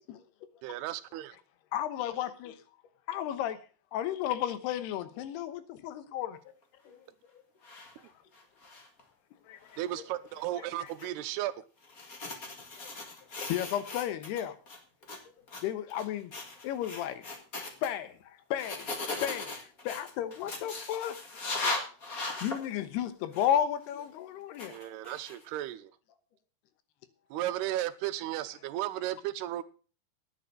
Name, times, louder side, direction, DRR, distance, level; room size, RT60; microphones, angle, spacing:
voice 1, 0.0-0.7 2.8-2.9 6.1-6.5 6.8-7.7 8.0-8.3 12.8-12.9 13.2-13.3 15.2-16.0 20.2-20.3 21.8-22.0 22.3-22.4 25.7-25.8 26.1-26.4 27.3-27.5, left 7 dB, 60° left, 3.0 m, -61 dB
voice 2, 0.6-1.4 9.8-11.5 21.6-21.9 24.7-25.9 27.3-29.6, right 14 dB, 85° right, 2.8 m, -35 dB
voice 3, 1.7-2.6 3.1-3.6 3.9-6.4 9.5-9.8 10.5-10.7 13.4-14.6 15.6-16.3 16.6-17.3 17.8-18.9 19.2-21.2 22.4-24.7 27.3-27.4, left 10 dB, 90° left, 3.1 m, -33 dB
sound 1, 7.6-7.9 8.3-9.0 9.7-9.9 10.9-11.0 11.8-14.4 14.7-15.2 15.5-15.6 15.9-16.0 16.3-17.9 18.6-22.6 23.3-23.5 24.5-25.5, left 3 dB, 35° left, 1.5 m, -38 dB
10.5 x 9.2 x 6.5 m
omnidirectional pair, 4.6 m